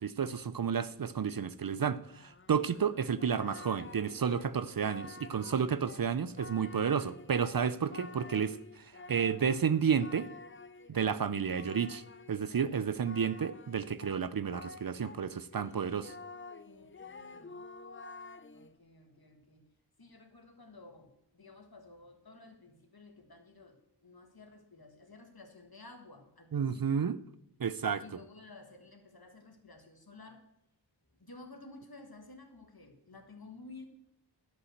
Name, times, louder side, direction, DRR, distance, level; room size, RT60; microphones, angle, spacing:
voice 1, 0.0-8.6 9.1-10.3 10.9-12.0 12.3-16.1 26.5-27.2 27.6-28.0, right 7 dB, 55° right, 0.5 m, -31 dB
Singing, 2.1-15.2 15.5-18.7, left 3 dB, 30° left, 0.5 m, -50 dB
voice 2, 16.7-17.6 18.5-19.7 20.0-27.1 28.0-30.5 31.1-33.9, left 2 dB, 55° left, 1.7 m, -53 dB
11.5 x 5.4 x 7.8 m
wide cardioid pair, 40°, 43 cm